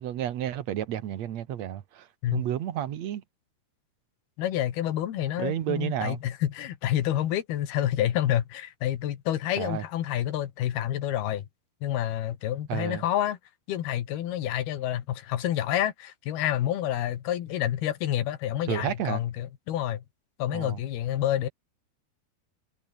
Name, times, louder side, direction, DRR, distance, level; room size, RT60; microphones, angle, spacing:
voice 1, 0.0-3.2 5.4-6.2 9.6-9.8 12.7-13.0 18.7-19.2 20.5-20.8, right 11 dB, 60° right, 2.0 m, -31 dB
voice 2, 4.4-11.5 11.8-13.4 13.7-20.0 20.4-21.5, left 12 dB, 75° left, 3.6 m, -28 dB
omnidirectional pair, 4.6 m